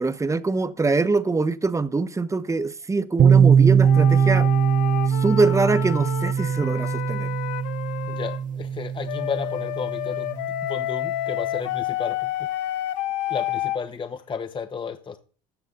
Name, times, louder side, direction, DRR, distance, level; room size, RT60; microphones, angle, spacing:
voice 1, 0.0-4.5 5.1-7.3, right 3 dB, 15° right, 1.0 m, -23 dB
sound 1, 3.2-10.9, right 7 dB, 45° right, 0.9 m, -21 dB
sound 2, 3.8-8.4 9.1-13.8, left 15 dB, 80° left, 1.1 m, -30 dB
voice 2, 8.1-12.5 13.3-15.2, left 5 dB, 25° left, 1.0 m, -33 dB
14.0 x 8.1 x 3.9 m
supercardioid pair, 85°, 18 cm